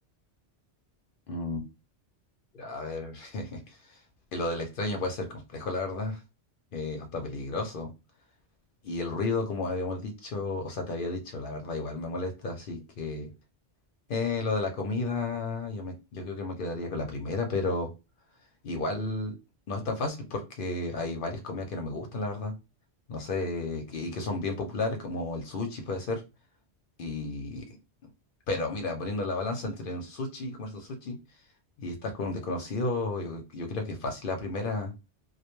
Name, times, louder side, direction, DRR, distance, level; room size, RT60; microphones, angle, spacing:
voice 1, 1.3-1.6 2.5-3.8 4.3-6.2 6.7-7.9 8.8-13.3 14.1-17.9 18.6-19.3 19.7-22.5 23.1-26.2 27.0-27.7 28.5-31.2 31.8-34.9, left 3 dB, 60° left, 0.6 m, -32 dB
2.2 x 2.1 x 3.0 m
omnidirectional pair, 1.1 m